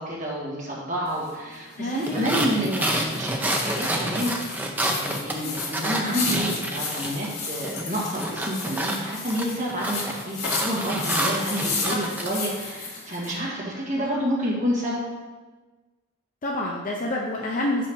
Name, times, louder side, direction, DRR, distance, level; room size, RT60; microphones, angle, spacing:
voice 1, 0.0-15.0, equal, 35° right, -6 dB, 1.9 m, -29 dB
sound 1, 1.0-13.4, left 4 dB, 85° left, 2.2 m, -33 dB
voice 2, 1.8-2.4 11.9-12.2 13.7-14.1 16.4-17.9, left 1 dB, 35° left, -1 dB, 0.5 m, -29 dB
sound 2, 2.1-7.3 7.6-12.3, right 1 dB, 10° right, 0.5 m, -29 dB
5.5 x 5.2 x 5.5 m, 1.3 s
head